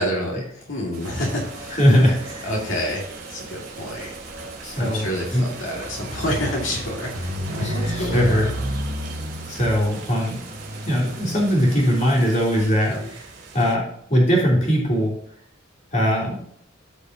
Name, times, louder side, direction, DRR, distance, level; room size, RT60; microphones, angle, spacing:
voice 1, 0.0-1.8 2.4-4.1 4.8-8.7 12.9-13.1, equal, 75° left, -3 dB, 2.2 m, -28 dB
sound 1, 0.9-12.7, right 3 dB, 45° right, 2.7 m, -42 dB
sound 2, 1.0-13.7, equal, 65° right, 2.1 m, -34 dB
voice 2, 1.8-2.5 4.6-5.4 7.6-8.5 9.5-10.4 10.8-13.0 13.5-15.1 15.9-16.4, equal, 35° left, -3 dB, 3.1 m, -20 dB
14.0 x 5.2 x 2.8 m, 0.66 s
head